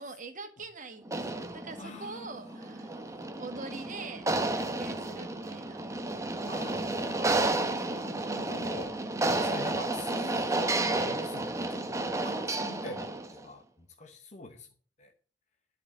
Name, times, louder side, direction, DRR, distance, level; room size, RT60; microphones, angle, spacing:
voice 1, 0.0-2.9 3.4-5.8, right 3 dB, 45° right, 8 dB, 1.6 m, -44 dB
sound 1, 1.0-13.4, right 2 dB, 15° right, 0.9 m, -32 dB
voice 2, 1.8-3.4 6.4-8.9 9.4-14.7 15.0-15.1, left 2 dB, 40° left, 2 dB, 1.1 m, -45 dB
11.5 x 5.3 x 7.2 m, 0.43 s
head